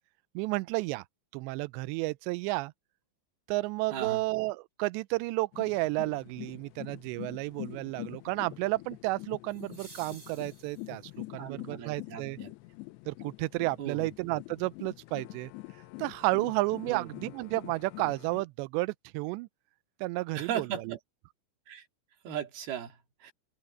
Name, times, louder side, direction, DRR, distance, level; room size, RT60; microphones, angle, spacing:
voice 1, 0.4-1.0 1.3-2.7 3.5-11.0 11.3-12.4 13.1-15.5 16.0-19.5 20.0-21.0, right 22 dB, 90° right, 2.5 m, -32 dB
sound 1, 3.9-4.0 9.5-11.3 13.5-13.6, right 2 dB, 15° right, 3.3 m, -53 dB
voice 2, 3.9-4.2 11.4-12.5 13.8-14.1 16.9-17.1 20.3-21.0 21.7-21.9 22.2-23.3, right 9 dB, 55° right, 3.8 m, -37 dB
sound 2, 5.5-18.4, left 22 dB, 90° left, 2.4 m, -45 dB
open air
omnidirectional pair, 5.7 m